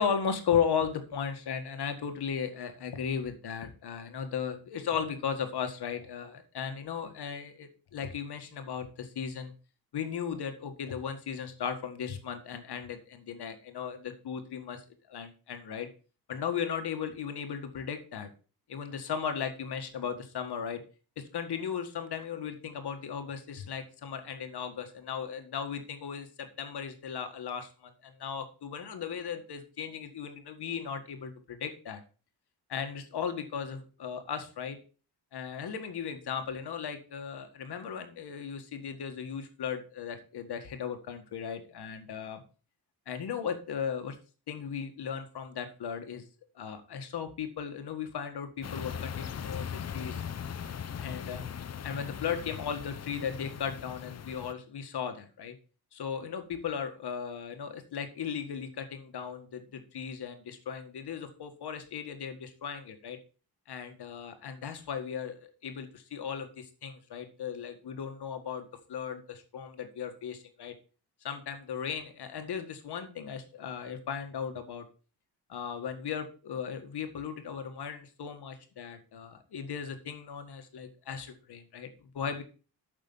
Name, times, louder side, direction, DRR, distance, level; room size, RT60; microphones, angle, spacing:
voice 1, 0.0-9.5 9.9-14.8 15.1-15.9 16.3-18.3 18.7-20.8 21.2-32.0 32.7-34.8 35.3-42.4 43.1-44.2 44.5-46.2 46.6-50.2 51.0-51.4 51.8-55.6 55.9-63.2 63.7-70.7 71.2-74.9 75.5-82.4, left 7 dB, 90° left, 7 dB, 1.7 m, -36 dB
sound 1, 48.6-54.5, left 8 dB, 40° left, 0.6 m, -39 dB
8.8 x 6.7 x 5.5 m, 0.36 s
wide cardioid pair, 135°, 39 cm